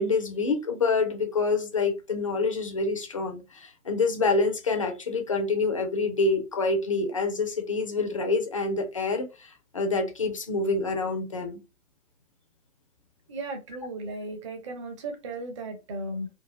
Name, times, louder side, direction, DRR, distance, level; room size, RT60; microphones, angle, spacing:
voice 1, 0.0-11.6, left 3 dB, 25° left, 0.4 m, -27 dB
voice 2, 13.3-16.3, right 2 dB, 25° right, 0.6 m, -36 dB
3.4 x 2.4 x 2.9 m
figure-of-eight pair, 140°, 40 cm